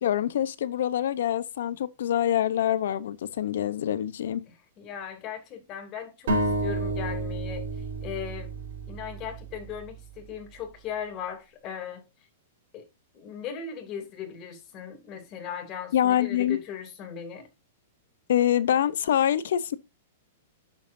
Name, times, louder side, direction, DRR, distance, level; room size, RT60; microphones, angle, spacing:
voice 1, 0.0-4.4 15.9-16.6 18.3-19.8, left 10 dB, 75° left, 0.8 m, -25 dB
voice 2, 4.5-7.7 8.0-8.5 8.9-12.1 12.7-12.8 13.1-17.5, left 8 dB, 30° left, 2.9 m, -38 dB
sound 1, 6.3-9.9, right 2 dB, 75° right, 4.2 m, -30 dB
8.9 x 7.3 x 2.7 m
hypercardioid pair, 155°, 0 cm